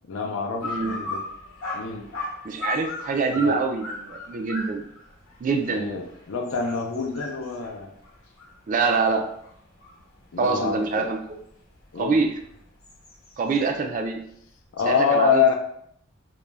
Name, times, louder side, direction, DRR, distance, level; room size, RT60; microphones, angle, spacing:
voice 1, 0.1-1.2 1.7-2.1 3.3-3.6 5.7-7.9 10.3-11.1 11.9-12.2 14.7-15.5, left 5 dB, 65° left, 3 dB, 0.4 m, -25 dB
sound 1, 0.6-10.2 10.7-13.6, left 3 dB, 85° left, 0.8 m, -37 dB
voice 2, 0.6-0.9 2.4-4.8 5.4-5.9 8.7-9.3 10.4-11.4 12.0-12.4 13.4-14.2 14.9-15.5, right 4 dB, 40° right, 5 dB, 0.3 m, -25 dB
2.4 x 2.1 x 3.2 m, 0.71 s
head